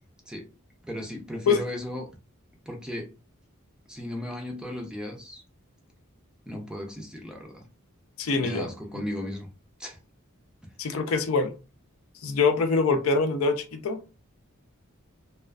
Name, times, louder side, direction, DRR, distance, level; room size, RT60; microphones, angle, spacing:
voice 1, 0.9-2.1 2.7-3.1 3.9-5.4 6.5-7.6 8.3-9.5 9.8-10.0, left 1 dB, 5° right, 1 dB, 0.4 m, -36 dB
voice 2, 8.2-8.7 10.8-11.5 12.2-14.0, left 4 dB, 80° left, 7 dB, 0.5 m, -24 dB
2.4 x 2.4 x 2.2 m, 0.32 s
head